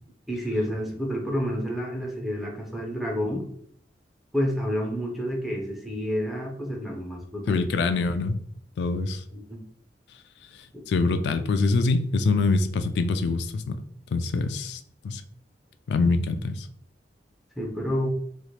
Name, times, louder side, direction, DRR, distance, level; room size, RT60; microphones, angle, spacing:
voice 1, 0.3-3.4 4.3-7.7 9.3-9.6 10.7-10.8 17.6-18.1, equal, ahead, 0 dB, 0.6 m, -29 dB
voice 2, 7.5-8.4 8.8-9.2 10.9-13.8 14.1-14.8 15.0-15.2 15.9-16.7, left 3 dB, 70° left, 10 dB, 0.3 m, -24 dB
3.2 x 2.8 x 2.4 m, 0.62 s
head